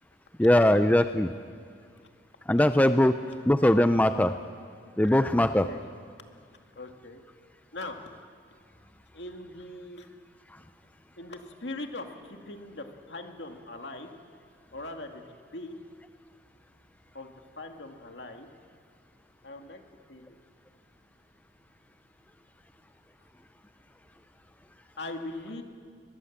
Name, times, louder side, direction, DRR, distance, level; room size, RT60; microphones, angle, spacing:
voice 1, 0.4-1.3 2.5-3.1 3.5-4.3 5.0-5.7, left 1 dB, 10° left, 9 dB, 0.5 m, -21 dB
voice 2, 6.8-7.2 7.7-8.0 9.1-10.1 11.2-14.1 14.7-15.8 17.1-18.5 19.4-19.8 20.1-20.4 25.0-25.6, left 2 dB, 65° left, 4 dB, 2.2 m, -40 dB
22.5 x 21.5 x 7.4 m, 2.1 s
head